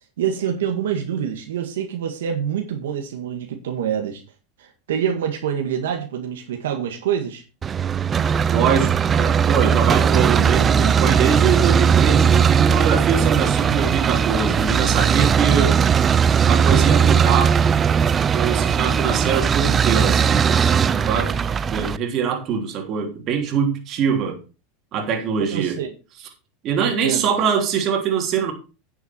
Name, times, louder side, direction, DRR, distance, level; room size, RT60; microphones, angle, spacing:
voice 1, 0.2-4.2 4.6-7.4 25.4-25.9 26.8-27.3, right 8 dB, 85° right, 1.8 m, -26 dB
sound 1, 7.6-22.0, right 7 dB, 25° right, 0.5 m, -18 dB
voice 2, 8.5-15.8 16.5-17.5 18.3-24.4 24.9-25.8 26.6-28.5, right 7 dB, 45° right, 3.2 m, -23 dB
10.0 x 7.0 x 4.5 m
supercardioid pair, 120°, 0 cm